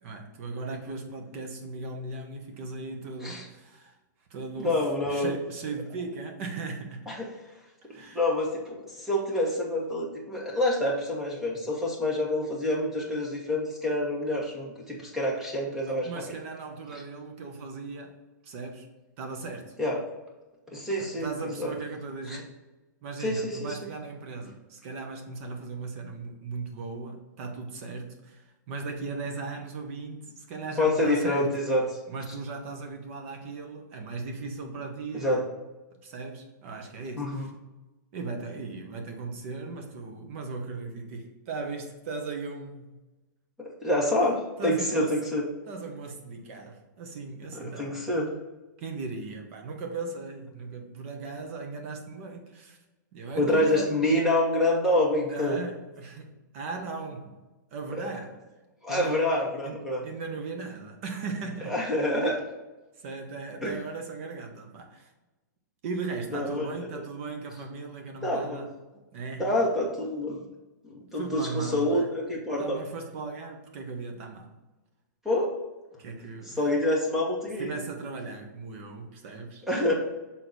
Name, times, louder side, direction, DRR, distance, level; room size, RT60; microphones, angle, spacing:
voice 1, 0.0-3.9 4.3-4.8 5.0-7.1 7.8-8.2 15.9-18.2 18.4-18.9 19.2-19.8 21.0-22.5 23.0-31.5 32.1-35.4 36.0-37.5 38.1-42.9 44.2-44.3 44.6-45.2 45.7-48.1 48.8-52.8 53.1-54.0 55.3-57.4 57.7-58.4 58.9-59.2 59.6-61.8 63.0-65.1 65.8-68.7 69.1-69.5 71.1-72.1 72.6-74.5 76.0-76.6 77.6-79.7, right 4 dB, 45° right, 4 dB, 1.1 m, -37 dB
voice 2, 4.6-5.3 7.1-7.3 8.1-16.1 16.9-17.0 19.8-20.0 20.7-21.7 22.3-22.4 23.2-23.7 30.8-31.8 35.1-35.4 37.2-37.5 43.8-45.4 47.5-48.3 53.4-55.6 58.8-60.0 61.7-62.4 63.6-63.7 66.3-67.0 68.2-68.6 69.4-70.4 71.0-72.8 75.2-75.5 76.6-77.7 79.7-79.9, left 1 dB, 5° right, -3 dB, 1.3 m, -27 dB
6.3 x 3.8 x 4.0 m, 1.1 s
hypercardioid pair, 155°, 10 cm